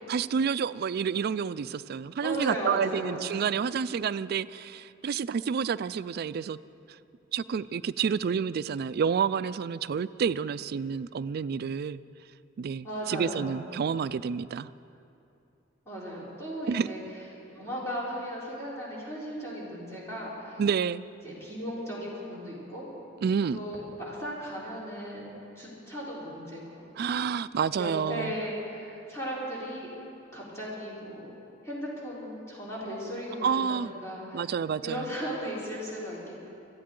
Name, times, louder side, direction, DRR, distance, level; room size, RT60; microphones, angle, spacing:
voice 1, 0.1-6.6 7.3-12.0 12.6-14.7 16.7-16.9 20.6-21.0 23.2-23.6 27.0-28.4 33.4-33.9 34.3-35.1, right 6 dB, 55° right, 16 dB, 0.3 m, -29 dB
voice 2, 2.2-3.5 12.8-13.7 15.9-17.0 17.5-20.6 21.2-22.8 23.5-26.8 27.8-29.9 30.3-31.3 31.6-34.5 34.8-36.5, equal, 15° left, -7 dB, 3.8 m, -36 dB
22.0 x 14.0 x 3.8 m, 2.7 s
head